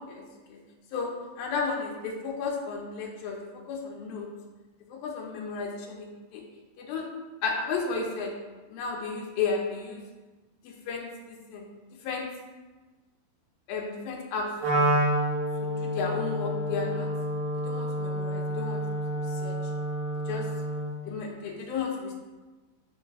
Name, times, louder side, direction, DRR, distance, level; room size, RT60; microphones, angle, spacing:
voice 1, 0.9-4.3 4.9-6.4 6.8-7.1 7.4-8.3 8.7-10.0 10.6-11.7 12.0-12.3 13.7-14.5 14.7-14.9 15.6-17.1 17.6-18.8 19.2-19.6 20.3-20.5 21.1-22.2, left 4 dB, 85° left, 0 dB, 2.7 m, -33 dB
Wind instrument woodwind instrument, 14.6-21.0, right 1 dB, 75° right, 3.2 m, -29 dB
10.5 x 5.0 x 2.2 m, 1.2 s
omnidirectional pair, 4.2 m